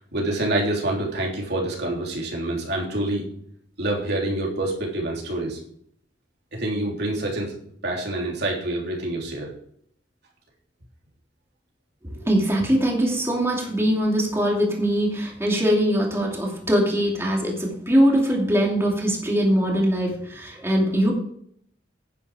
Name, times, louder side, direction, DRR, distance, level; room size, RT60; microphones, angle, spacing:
voice 1, 0.1-3.3 3.8-5.6 6.5-7.6 7.8-9.5, right 1 dB, 65° right, -1 dB, 3.3 m, -26 dB
voice 2, 12.0-21.1, equal, 15° right, -2 dB, 2.5 m, -22 dB
10.5 x 9.7 x 4.9 m, 0.66 s
head